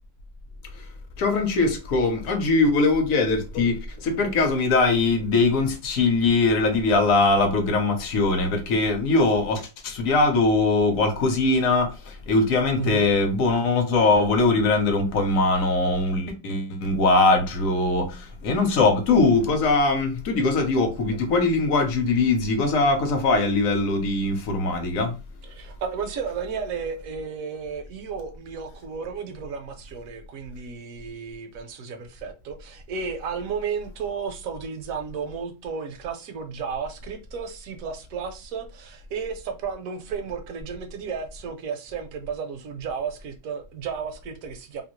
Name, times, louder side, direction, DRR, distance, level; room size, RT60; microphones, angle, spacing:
voice 1, 1.2-25.2, left 3 dB, 60° left, 1.0 m, -21 dB
voice 2, 12.8-13.1 25.5-44.8, right 6 dB, 70° right, 0.9 m, -33 dB
2.7 x 2.6 x 3.0 m
omnidirectional pair, 1.7 m